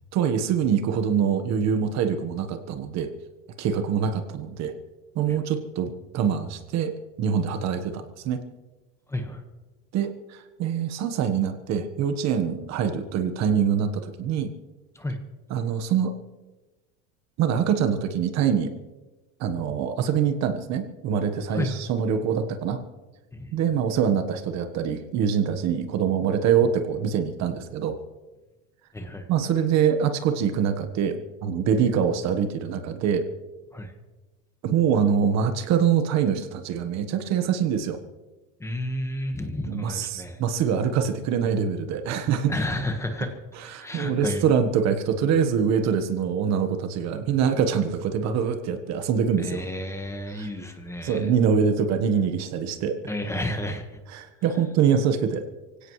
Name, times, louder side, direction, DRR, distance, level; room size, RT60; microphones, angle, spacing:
voice 1, 0.1-3.1 3.6-4.7 5.1-8.4 9.9-14.5 15.5-16.1 17.4-18.7 19.4-22.8 23.5-28.0 29.3-33.3 34.6-38.0 39.7-42.5 43.6-49.6 50.3-50.5 51.0-53.0 54.1-55.4, right 7 dB, 45° right, 8 dB, 1.3 m, -24 dB
voice 2, 9.1-9.4 14.9-15.2 21.5-21.8 23.3-23.5 28.9-29.3 33.7-33.9 38.6-40.4 42.5-43.4 43.7-44.4 49.4-51.3 53.1-53.8, left 1 dB, 5° left, 5 dB, 1.4 m, -31 dB
24.0 x 17.0 x 3.2 m, 1.2 s
supercardioid pair, 140°, 37 cm